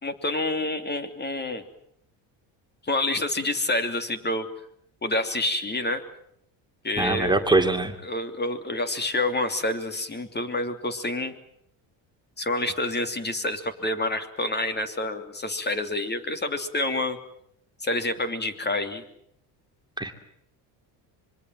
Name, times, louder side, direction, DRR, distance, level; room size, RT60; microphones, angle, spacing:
voice 1, 0.0-1.6 2.8-4.5 5.0-6.0 6.8-7.3 8.0-11.3 12.4-17.2 17.8-19.0, left 2 dB, 20° left, 9 dB, 3.1 m, -28 dB
voice 2, 7.0-7.9 20.0-20.1, right 2 dB, 10° right, 5 dB, 2.9 m, -22 dB
26.0 x 22.5 x 7.7 m, 0.72 s
supercardioid pair, 90°, 46 cm